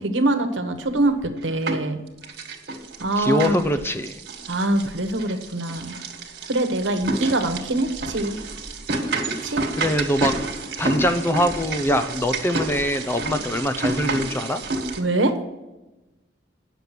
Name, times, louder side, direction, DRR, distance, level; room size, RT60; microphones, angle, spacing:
voice 1, 0.0-2.0 3.0-3.6 4.5-6.0 6.5-8.4 9.3-9.7 15.0-15.3, right 2 dB, 80° right, 6 dB, 1.3 m, -24 dB
sound 1, 1.1-1.9 2.2-15.0, right 3 dB, 60° right, 1.8 m, -29 dB
voice 2, 3.2-4.1 9.8-10.3 10.8-14.6, equal, 15° left, 8 dB, 0.6 m, -23 dB
9.7 x 6.9 x 6.0 m, 1.0 s
head